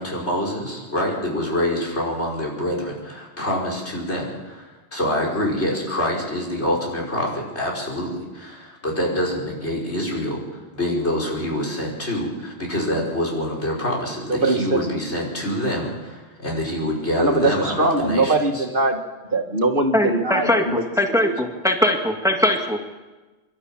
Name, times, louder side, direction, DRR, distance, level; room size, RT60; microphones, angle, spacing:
voice 1, 0.0-18.6, left 1 dB, 80° left, -1 dB, 5.7 m, -26 dB
voice 2, 14.3-14.8 17.2-19.0 19.3-20.8 21.2-21.4, right 2 dB, 50° right, 4 dB, 2.0 m, -21 dB
voice 3, 19.9-22.9, left 1 dB, 5° right, 3 dB, 1.8 m, -21 dB
25.5 x 12.0 x 8.9 m, 1.2 s
omnidirectional pair, 1.1 m